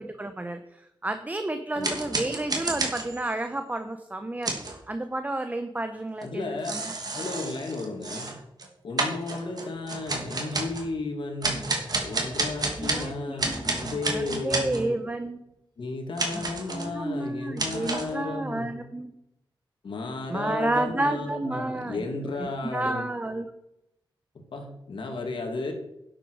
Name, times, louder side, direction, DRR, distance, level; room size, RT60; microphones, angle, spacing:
voice 1, 0.0-4.5 4.9-6.9 12.8-15.4 16.7-19.1 20.3-22.1 22.3-23.4, right 2 dB, 20° right, 8 dB, 0.9 m, -31 dB
sound 1, 1.8-3.4 4.4-4.8 6.2-6.3 6.6-8.7 9.0-10.9 11.4-13.1 13.4-14.8 16.2-16.9 17.6-18.1, right 2 dB, 50° right, 2.5 m, -30 dB
voice 2, 6.2-6.7 7.1-8.4 8.8-14.9 15.8-18.7 19.8-23.1 24.3-25.7, left 3 dB, 70° left, 4 dB, 2.5 m, -34 dB
11.0 x 9.1 x 4.8 m, 0.83 s
wide cardioid pair, 100°, 9 cm